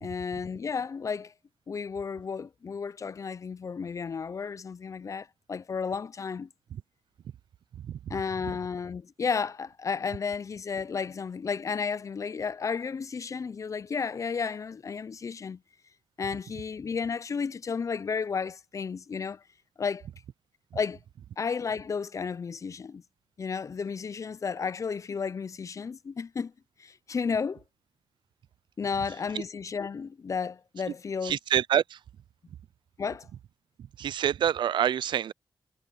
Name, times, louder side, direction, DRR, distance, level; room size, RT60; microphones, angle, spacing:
voice 1, 0.0-1.3 1.7-6.5 8.1-15.6 16.2-19.4 19.8-20.1 20.7-21.0 21.4-23.0 23.4-26.5 26.8-27.6 28.8-31.3 33.0-33.3, left 5 dB, 45° left, 0.4 m, -33 dB
voice 2, 7.7-8.1 29.3-29.4 31.2-32.0 34.0-35.3, right 9 dB, 90° right, 0.3 m, -27 dB
wide cardioid pair, 105°, 8 cm